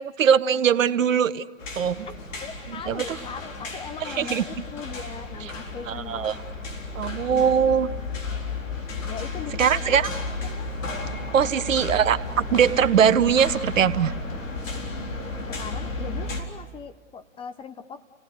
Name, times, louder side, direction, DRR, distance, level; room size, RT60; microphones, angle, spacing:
voice 1, 0.0-1.4 1.8-2.1 2.9-3.2 4.2-4.4 5.9-6.3 6.9-7.9 9.6-10.1 11.3-14.1, right 8 dB, 75° right, 14 dB, 1.1 m, -21 dB
sound 1, 1.6-16.4, left 3 dB, 75° left, 4.2 m, -33 dB
voice 2, 2.4-6.4 7.3-7.5 9.1-10.7 11.4-11.5 15.5-18.0, left 6 dB, 15° left, 9 dB, 0.7 m, -39 dB
30.0 x 18.0 x 8.1 m, 1.5 s
hypercardioid pair, 115°, 39 cm